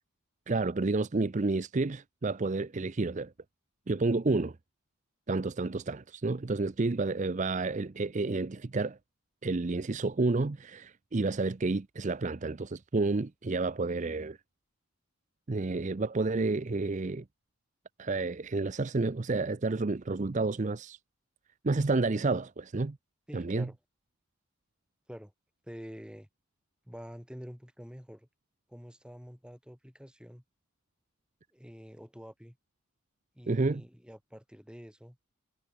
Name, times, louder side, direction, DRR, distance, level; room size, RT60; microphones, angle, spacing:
voice 1, 0.5-3.3 3.9-4.6 5.3-9.0 9.4-14.4 15.5-17.2 18.0-21.0 21.6-23.0 23.3-23.7 33.5-33.8, right 3 dB, 35° right, 0.5 m, -30 dB
voice 2, 23.3-23.8 25.1-25.3 25.6-26.3 26.9-28.3 28.7-30.4 31.5-32.6 33.4-35.2, equal, 5° right, 3.6 m, -47 dB
head